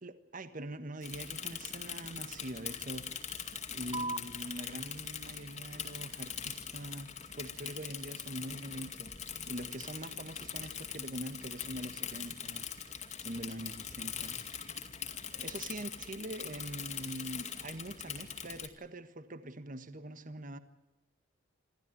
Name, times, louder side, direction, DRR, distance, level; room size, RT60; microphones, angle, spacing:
voice 1, 0.0-3.2 3.7-12.9 13.2-14.7 15.3-20.6, right 1 dB, 45° right, 11 dB, 1.5 m, -44 dB
Bicycle / Mechanisms, 1.0-18.7, left 8 dB, 40° left, 2.2 m, -42 dB
sound 1, 3.9-10.9, right 2 dB, 25° right, 0.7 m, -48 dB
27.0 x 14.0 x 9.3 m, 1.0 s
head